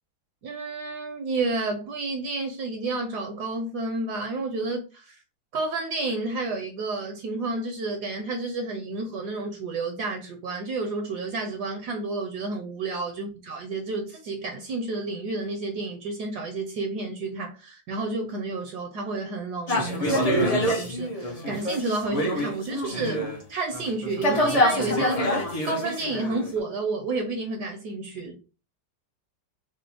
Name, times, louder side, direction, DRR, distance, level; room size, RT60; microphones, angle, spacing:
voice 1, 0.4-5.2 5.5-23.2 23.5-28.4, right 3 dB, 70° right, 1.1 m, -31 dB
sound 1, 19.7-23.4 23.7-26.6, equal, 45° left, 0.4 m, -26 dB
5.0 x 2.1 x 3.3 m
omnidirectional pair, 2.0 m